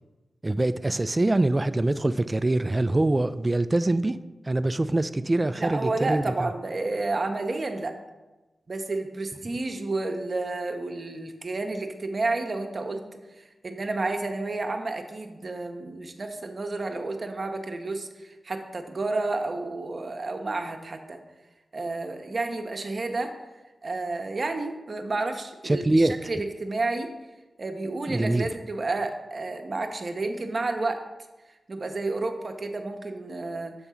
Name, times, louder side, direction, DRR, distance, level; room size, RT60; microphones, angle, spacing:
voice 1, 0.4-4.2 4.5-6.2 25.6-26.1 28.1-28.5, right 2 dB, 30° right, 0.3 m, -24 dB
voice 2, 5.5-8.0 8.7-13.0 13.4-21.2 21.7-23.3 23.8-27.1 27.6-31.0 31.7-33.7, right 2 dB, 55° right, 0.7 m, -31 dB
7.0 x 3.6 x 5.6 m
cardioid pair, 40°, 0 cm